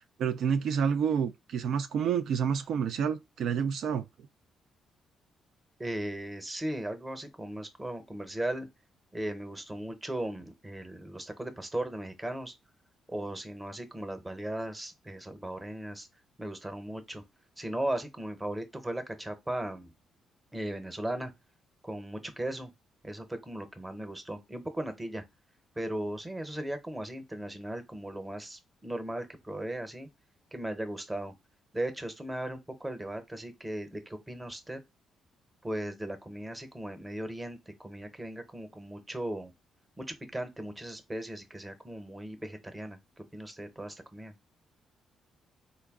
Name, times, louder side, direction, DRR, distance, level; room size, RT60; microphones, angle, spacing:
voice 1, 0.2-4.0, right 7 dB, 70° right, 0.3 m, -29 dB
voice 2, 5.8-8.7 9.1-12.5 13.1-16.1 16.4-17.2 17.6-19.9 20.5-21.3 21.8-22.7 23.0-25.2 25.8-30.1 30.5-31.3 31.7-34.8 35.6-39.5 40.0-44.3, right 1 dB, 15° right, 0.8 m, -37 dB
3.9 x 2.2 x 3.5 m
cardioid pair, 90°, 0 cm